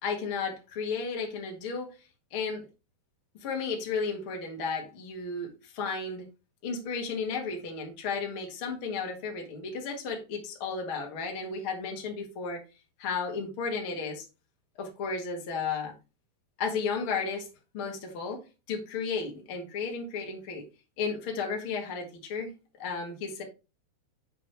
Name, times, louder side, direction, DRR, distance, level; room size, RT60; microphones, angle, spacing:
voice 1, 0.0-1.9 2.3-2.7 3.3-6.3 6.6-12.6 13.0-14.3 14.8-15.9 16.6-20.7 21.0-23.4, left 5 dB, 45° left, 1.8 m, -33 dB
7.6 x 6.4 x 3.3 m
omnidirectional pair, 4.6 m